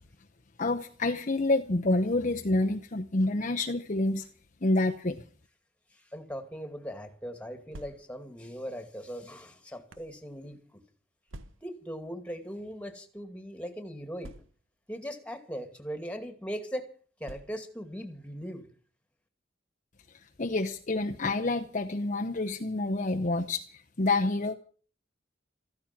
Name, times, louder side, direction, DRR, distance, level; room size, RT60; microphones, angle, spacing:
voice 1, 0.6-4.3 4.6-5.2 20.4-23.6 24.0-24.5, left 2 dB, 40° left, 4 dB, 0.9 m, -28 dB
voice 2, 5.9-10.8 11.6-14.3 14.9-16.9 17.2-18.6, equal, 5° left, 8 dB, 2.3 m, -39 dB
sound 1, 7.7-8.4 9.2-10.2 11.3-11.9 12.8-12.9 13.2-13.3 14.2-14.9 15.8-16.0 17.2-17.9, right 1 dB, 85° right, 1.3 m, -49 dB
15.0 x 14.5 x 5.9 m, 0.43 s
head